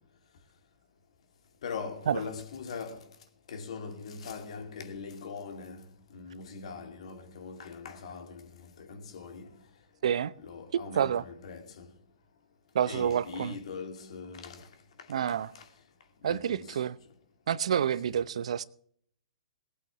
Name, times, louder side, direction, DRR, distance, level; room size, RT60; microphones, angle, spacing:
voice 1, 1.6-3.1 3.5-9.6 10.4-11.9 12.8-14.7 15.0-15.7 16.2-16.8 18.1-18.2, left 5 dB, 65° left, 2.5 m, -42 dB
voice 2, 10.7-11.2 12.7-13.6 15.1-15.5 16.2-16.9 17.5-18.6, right 9 dB, 65° right, 0.7 m, -28 dB
19.0 x 8.2 x 6.0 m
hypercardioid pair, 130°, 4 cm